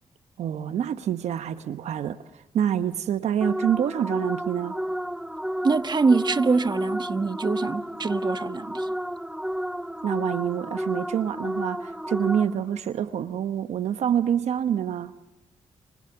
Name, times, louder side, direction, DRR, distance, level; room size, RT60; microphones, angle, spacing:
voice 1, 0.4-4.8 10.0-15.1, right 9 dB, 80° right, 1.0 m, -27 dB
sound 1, 3.4-12.8, equal, 5° right, 1.1 m, -31 dB
voice 2, 5.6-8.9, right 4 dB, 40° right, 1.4 m, -24 dB
29.5 x 29.0 x 6.9 m
supercardioid pair, 55°, 11 cm